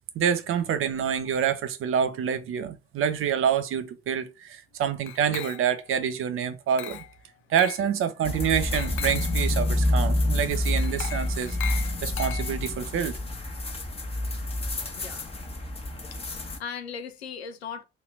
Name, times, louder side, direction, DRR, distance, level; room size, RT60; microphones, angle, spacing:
voice 1, 0.1-7.0 7.5-11.6 12.0-13.2, right 8 dB, 40° right, 0.7 m, -27 dB
Glass, 5.1-5.9 6.8-7.2 7.6-7.9 8.7-9.4 10.8-12.8, left 11 dB, 40° left, 0.5 m, -38 dB
sound 1, 8.2-16.6, left 1 dB, 20° left, 1.1 m, -28 dB
voice 2, 16.1-17.8, left 6 dB, 75° left, 0.7 m, -38 dB
3.2 x 2.9 x 4.4 m
figure-of-eight pair, 50°, 31 cm